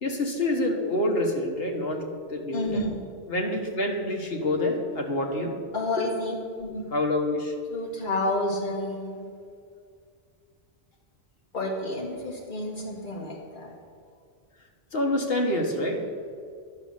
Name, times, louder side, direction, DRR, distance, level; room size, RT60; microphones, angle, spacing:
voice 1, 0.0-2.9 3.3-5.5 6.0-6.1 6.9-7.5 14.9-16.0, left 1 dB, 70° left, 1 dB, 1.6 m, -27 dB
voice 2, 2.5-3.0 5.7-6.8 7.7-9.3 11.5-13.8, left 1 dB, 50° left, -3 dB, 2.1 m, -30 dB
10.5 x 6.4 x 7.1 m, 2.3 s
omnidirectional pair, 1.1 m